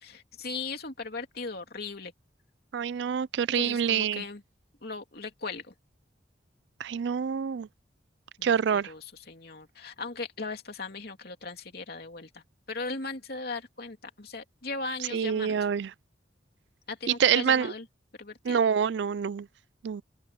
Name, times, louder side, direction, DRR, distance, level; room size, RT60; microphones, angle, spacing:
voice 1, 0.0-2.1 3.5-4.4 4.8-5.7 8.4-15.6 16.9-17.9 18.2-18.6, left 3 dB, 60° left, 3.1 m, -38 dB
voice 2, 2.7-4.2 6.8-7.7 8.4-8.9 15.1-15.9 17.1-17.7 18.4-19.5 19.8-20.0, right 7 dB, 70° right, 0.4 m, -26 dB
open air
head